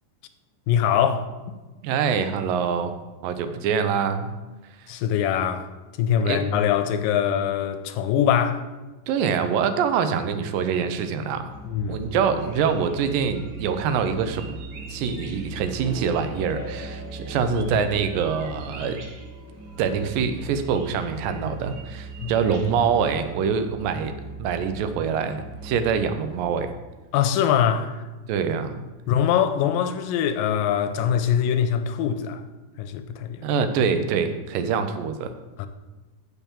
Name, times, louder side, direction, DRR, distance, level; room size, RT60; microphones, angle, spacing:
voice 1, 0.7-1.5 4.9-5.7 6.0-8.6 11.7-12.0 22.2-22.3 27.1-28.0 29.1-32.4 32.8-33.4 35.6-35.7, left 9 dB, 85° left, 2.3 m, -23 dB
voice 2, 1.8-2.9 3.2-4.3 6.3-6.4 9.1-11.5 11.9-14.6 14.9-19.0 19.8-24.1 24.4-26.7 28.3-28.8 33.4-35.3, right 6 dB, 85° right, 2.4 m, -25 dB
Musical instrument, 11.4-26.7, right 5 dB, 20° right, 2.5 m, -40 dB
sound 1, 12.4-23.3, right 4 dB, 60° right, 1.9 m, -48 dB
sound 2, 13.5-27.3, left 2 dB, 35° left, 1.3 m, -44 dB
6.8 x 5.9 x 7.2 m
omnidirectional pair, 3.9 m